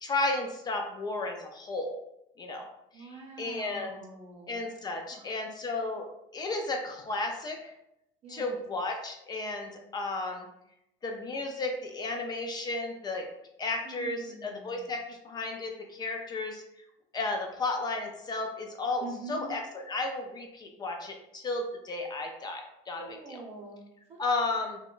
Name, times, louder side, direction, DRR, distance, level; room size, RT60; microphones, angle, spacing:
voice 1, 0.0-2.0 2.4-2.7 3.0-3.1 3.4-4.0 4.5-6.1 6.3-7.7 8.3-10.4 11.0-13.3 13.6-16.6 17.1-23.4 24.2-24.8, left 2 dB, 25° left, 3 dB, 0.4 m, -33 dB
voice 2, 2.9-4.6 4.9-5.3 8.2-8.6 13.8-14.9 19.0-19.5 23.0-24.2, right 3 dB, 45° right, 0 dB, 0.8 m, -45 dB
3.5 x 2.1 x 2.4 m, 0.82 s
supercardioid pair, 115°, 15 cm